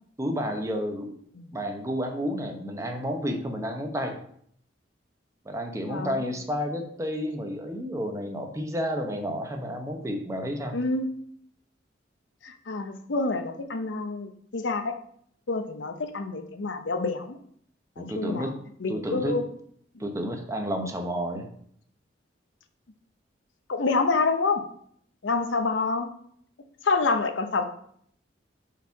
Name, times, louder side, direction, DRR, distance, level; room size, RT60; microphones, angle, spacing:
voice 1, 0.2-1.1 1.5-4.2 5.4-10.8 18.0-18.5 18.9-19.3 20.0-21.5, equal, 15° right, 4 dB, 0.8 m, -31 dB
voice 2, 5.9-6.2 10.7-11.1 12.4-14.9 15.5-17.4 18.0-18.5 18.8-19.4 23.7-24.6 25.2-26.1 26.8-27.6, left 3 dB, 85° left, 7 dB, 0.7 m, -27 dB
5.4 x 4.7 x 4.6 m, 0.64 s
head